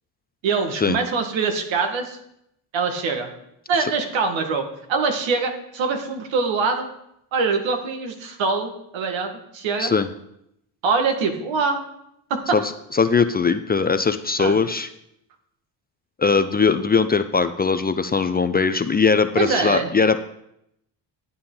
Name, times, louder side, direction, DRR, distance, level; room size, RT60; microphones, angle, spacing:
voice 1, 0.4-2.2 2.7-3.3 3.7-6.9 7.3-9.9 10.8-11.8 12.3-12.6 14.4-14.6 19.4-19.9, right 4 dB, 75° right, 5 dB, 1.8 m, -24 dB
voice 2, 12.5-14.9 16.2-20.2, left 5 dB, 20° left, 10 dB, 0.5 m, -20 dB
11.0 x 8.6 x 3.8 m, 0.78 s
cardioid pair, 95°, 45 cm